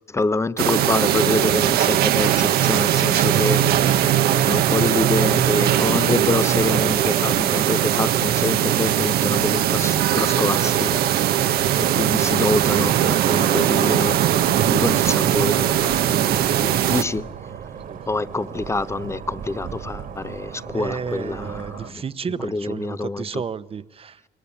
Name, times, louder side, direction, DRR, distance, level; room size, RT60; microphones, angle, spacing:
voice 1, 0.1-3.7 4.0-11.0 11.8-14.2 14.6-17.3 18.1-22.0 22.4-23.4, left 3 dB, 15° left, 0.8 m, -26 dB
sound 1, 0.6-17.0, right 11 dB, 85° right, 1.4 m, -20 dB
sound 2, 4.9-21.9, right 7 dB, 65° right, 2.7 m, -38 dB
voice 2, 20.7-24.2, right 6 dB, 35° right, 1.0 m, -32 dB
25.5 x 22.5 x 8.7 m
cardioid pair, 100°, 16 cm